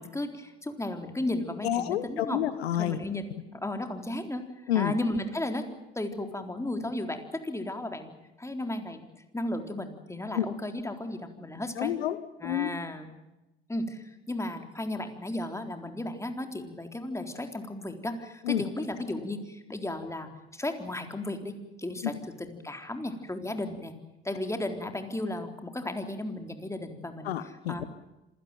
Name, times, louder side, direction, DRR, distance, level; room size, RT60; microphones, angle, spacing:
voice 1, 0.0-2.4 2.7-3.2 3.5-4.4 4.7-5.6 6.0-9.0 9.3-11.9 12.4-13.1 13.7-23.9 24.2-27.3 27.7-27.9, left 1 dB, 10° left, 6 dB, 3.9 m, -34 dB
voice 2, 1.6-3.0 4.7-4.9 10.3-10.5 11.8-12.7 18.4-18.6 22.0-22.2 27.2-27.8, left 11 dB, 80° left, 14 dB, 1.2 m, -29 dB
26.5 x 17.0 x 9.2 m, 0.97 s
hypercardioid pair, 65°, 30 cm